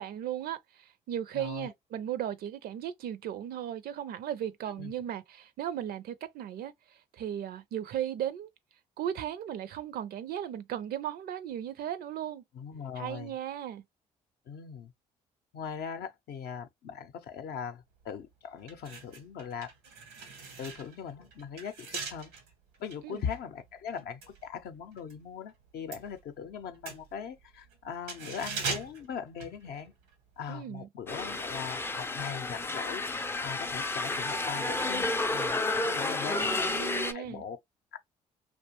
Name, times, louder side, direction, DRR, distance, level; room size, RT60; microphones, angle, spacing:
voice 1, 0.0-8.5 9.0-12.4 13.0-13.8 23.0-23.2 30.5-30.9 36.3-37.4, right 10 dB, 55° right, 0.4 m, -36 dB
voice 2, 1.3-1.7 4.8-4.9 12.5-13.3 14.5-14.9 15.5-19.7 20.6-22.3 22.8-29.9 30.4-33.0 33.4-37.6 37.9-38.0, left 7 dB, 60° left, 0.6 m, -40 dB
sound 1, 18.0-18.2 18.6-25.2 25.5-30.1 30.4-30.6, right 5 dB, 85° right, 0.8 m, -41 dB
sound 2, 31.1-37.1, left 2 dB, 15° left, 0.4 m, -31 dB
2.5 x 2.1 x 2.9 m
hypercardioid pair, 50°, 18 cm